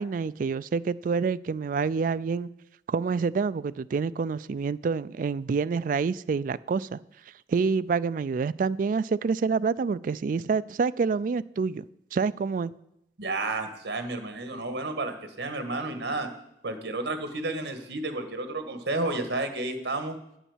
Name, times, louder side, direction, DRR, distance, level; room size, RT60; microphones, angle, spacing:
voice 1, 0.0-2.5 2.9-7.0 7.5-11.8 12.1-12.7, right 5 dB, 50° right, 16 dB, 0.3 m, -27 dB
voice 2, 13.2-16.3 16.6-20.2, right 2 dB, 85° right, 8 dB, 1.6 m, -31 dB
9.3 x 7.1 x 7.2 m, 0.82 s
head